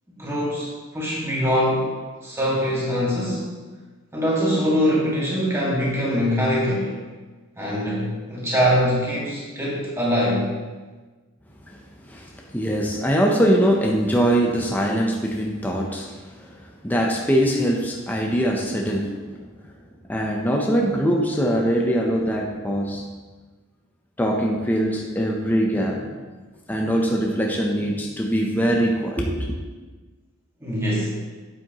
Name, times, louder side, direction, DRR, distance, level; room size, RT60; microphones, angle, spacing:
voice 1, 0.2-1.9 2.2-3.4 4.1-6.9 7.6-10.5 30.6-31.2, equal, 10° right, -6 dB, 1.9 m, -23 dB
voice 2, 11.7-19.2 20.1-23.0 24.2-26.0 26.7-29.5, equal, 10° left, -1 dB, 0.7 m, -22 dB
8.8 x 7.5 x 3.0 m, 1.3 s
head